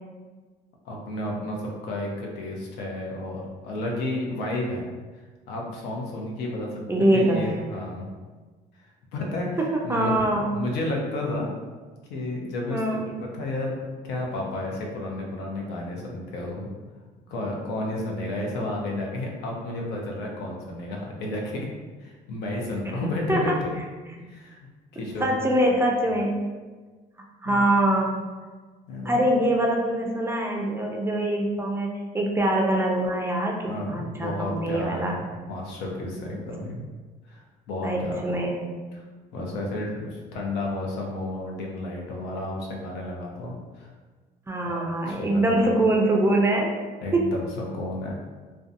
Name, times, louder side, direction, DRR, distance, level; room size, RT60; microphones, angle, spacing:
voice 1, 0.8-4.9 5.5-6.8 7.1-8.1 9.1-10.3 10.5-11.5 12.1-13.7 14.0-16.7 17.3-21.7 22.0-23.8 24.2-24.6 24.9-25.7 27.4-27.6 28.9-29.2 33.6-36.8 37.3-38.2 38.9-39.0 39.3-43.9 44.6-45.7 47.0-48.1, left 1 dB, 85° left, -1 dB, 0.6 m, -32 dB
voice 2, 6.9-7.7 9.6-10.5 12.7-13.1 23.3-23.6 25.2-26.3 27.4-28.1 29.0-33.6 33.9-35.2 37.8-38.7 44.5-46.7 47.1-47.3, right 1 dB, 15° right, 0 dB, 0.4 m, -23 dB
2.6 x 2.2 x 2.5 m, 1.4 s
cardioid pair, 110°, 17 cm